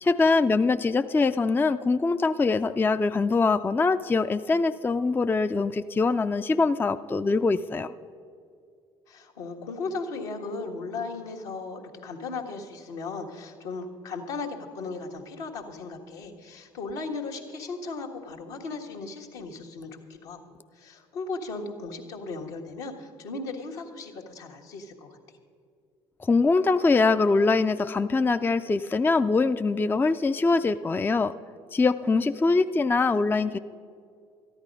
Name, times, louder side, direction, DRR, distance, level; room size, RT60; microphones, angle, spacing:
voice 1, 0.0-7.9 26.2-31.3 31.7-33.6, left 3 dB, 15° left, 11 dB, 0.4 m, -23 dB
voice 2, 9.1-20.4 20.7-25.2, left 3 dB, 75° left, -1 dB, 1.5 m, -36 dB
13.5 x 10.5 x 5.2 m, 2.3 s
hypercardioid pair, 55°, 14 cm